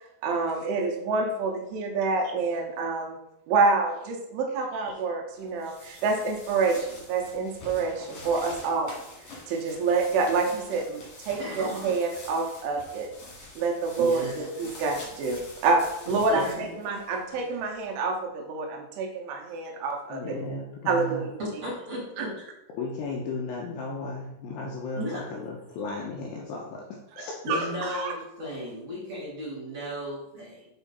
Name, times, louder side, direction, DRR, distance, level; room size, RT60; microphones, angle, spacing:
voice 1, 0.2-3.2 3.5-9.0 9.5-13.1 13.6-20.4 20.9-21.3 22.2-22.3 27.5-28.1, right 4 dB, 80° right, 1 dB, 3.2 m, -27 dB
rustling empty garbage bag, 5.4-17.9, left 2 dB, 45° left, 2.2 m, -46 dB
voice 2, 11.4-11.7 14.0-14.5 16.1-16.7 21.4-22.5 25.0-25.2 27.4-30.7, equal, 35° right, -7 dB, 3.3 m, -35 dB
voice 3, 20.1-21.3 22.7-26.8 27.2-27.7, left 3 dB, 80° left, -2 dB, 2.6 m, -35 dB
8.0 x 4.5 x 4.1 m, 0.84 s
omnidirectional pair, 5.7 m